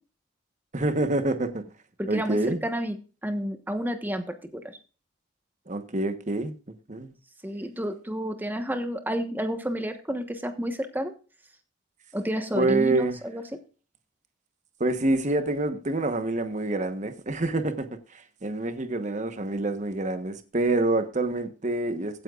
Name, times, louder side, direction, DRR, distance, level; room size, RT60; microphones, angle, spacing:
voice 1, 0.7-1.6 2.1-2.6 5.7-6.5 6.9-7.1 12.5-13.2 14.8-17.9 18.1-22.2, right 2 dB, 35° right, 1.1 m, -26 dB
voice 2, 2.0-3.0 3.2-4.8 7.4-11.1 12.1-13.4, equal, 10° right, 1.2 m, -30 dB
16.0 x 8.9 x 2.4 m
head